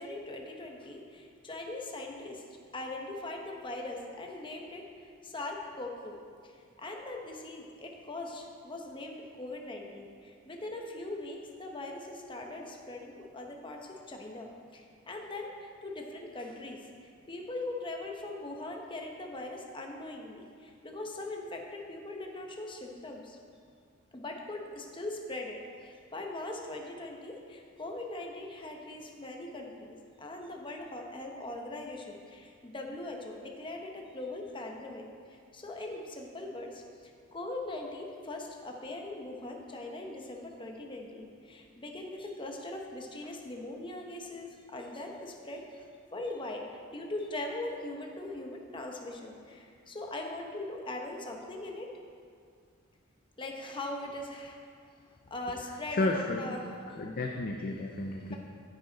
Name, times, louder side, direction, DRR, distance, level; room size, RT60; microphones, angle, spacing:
voice 1, 0.0-2.4 2.7-23.4 24.1-46.6 46.9-51.9 53.4-54.6 55.3-56.6 56.9-57.0, left 2 dB, 25° left, 1 dB, 0.9 m, -41 dB
voice 2, 55.9-56.6 56.9-58.3, left 2 dB, 45° left, 2 dB, 0.5 m, -32 dB
9.6 x 9.0 x 4.0 m, 2.2 s
head